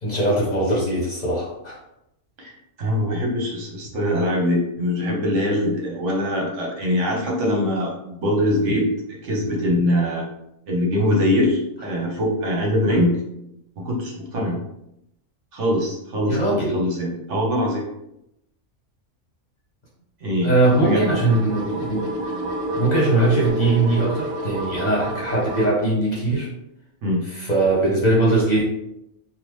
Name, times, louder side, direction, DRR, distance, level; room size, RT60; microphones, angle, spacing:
voice 1, 0.0-1.8 12.9-13.0 14.4-14.5 16.3-16.8 20.4-22.0 22.7-26.5 27.3-28.6, right 2 dB, 40° left, -5 dB, 0.8 m, -21 dB
voice 2, 2.4-8.9 9.2-10.2 10.7-13.2 13.8-14.6 15.5-17.8 20.2-20.5 20.8-21.1 27.0-27.2, left 1 dB, 70° right, -1 dB, 1.1 m, -22 dB
sound 1, 20.6-25.7, right 1 dB, 55° right, 0.8 m, -28 dB
3.6 x 2.2 x 3.0 m, 0.83 s
omnidirectional pair, 1.3 m